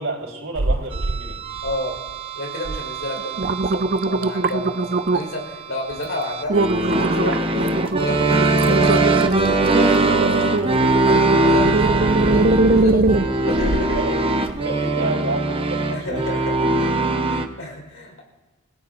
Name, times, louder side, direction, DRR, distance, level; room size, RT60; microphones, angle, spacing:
voice 1, 0.0-1.4 10.0-10.5 12.8-12.9 13.2-13.3 13.9-14.2 14.6-16.4, right 2 dB, 65° right, -1 dB, 3.8 m, -29 dB
sound 1, 0.5-1.2 1.6-2.1 2.6-2.8 3.2-5.4 5.9-6.1 6.5-14.0 14.5-14.6, right 2 dB, 45° right, 0.6 m, -22 dB
sound 2, 0.9-17.5, right 2 dB, 25° right, 0.9 m, -22 dB
voice 2, 1.6-2.0 2.3-9.0 10.9-13.2 13.5-14.2 15.9-16.9 17.3-18.2, left 1 dB, 60° left, 1 dB, 4.6 m, -31 dB
29.0 x 17.0 x 2.6 m, 1.2 s
head